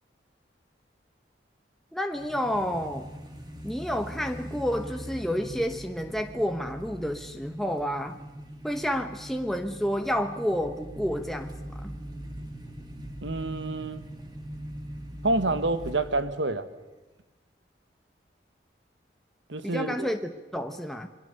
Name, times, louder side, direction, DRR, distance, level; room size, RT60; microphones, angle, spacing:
voice 1, 1.9-3.1 3.6-8.2 8.6-12.0 19.6-21.1, equal, ahead, 5 dB, 0.9 m, -30 dB
sound 1, 2.1-16.4, equal, 25° right, 2.4 m, -41 dB
voice 2, 13.2-14.0 15.2-16.7 19.5-20.1, right 2 dB, 85° right, 11 dB, 1.4 m, -28 dB
27.5 x 21.5 x 6.8 m, 1.2 s
head